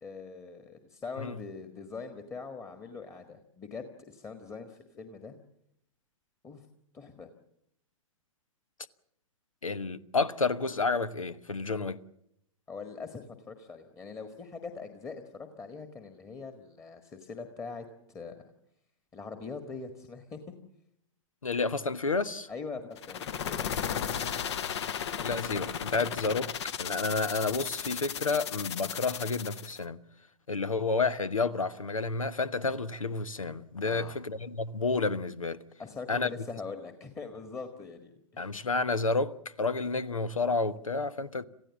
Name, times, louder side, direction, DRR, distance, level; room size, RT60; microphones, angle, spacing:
voice 1, 0.0-5.4 6.4-6.7 6.9-7.3 12.7-18.3 19.1-20.5 22.5-23.8 33.8-34.2 35.8-38.5, left 4 dB, 15° left, 1.7 m, -42 dB
voice 2, 9.6-12.0 21.4-22.5 25.2-26.5 26.8-30.0 30.5-35.6 36.1-36.3 38.4-41.4, left 3 dB, 85° left, 1.0 m, -30 dB
sound 1, 23.0-29.8, left 8 dB, 55° left, 1.1 m, -35 dB
27.5 x 15.5 x 7.3 m
figure-of-eight pair, 110°, 17 cm